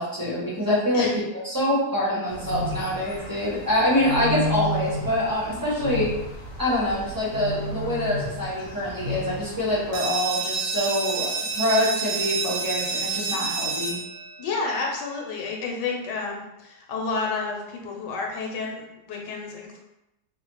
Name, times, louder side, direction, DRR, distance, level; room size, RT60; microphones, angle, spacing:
voice 1, 0.0-6.1 6.6-14.0, left 1 dB, 20° right, -8 dB, 0.7 m, -25 dB
sound 1, 2.3-10.0, equal, 70° left, 1.0 m, -32 dB
sound 2, 9.9-15.4, right 4 dB, 90° right, 1.3 m, -29 dB
voice 2, 14.4-19.8, left 4 dB, 85° left, 0 dB, 1.3 m, -30 dB
3.2 x 2.0 x 3.0 m, 0.90 s
omnidirectional pair, 1.8 m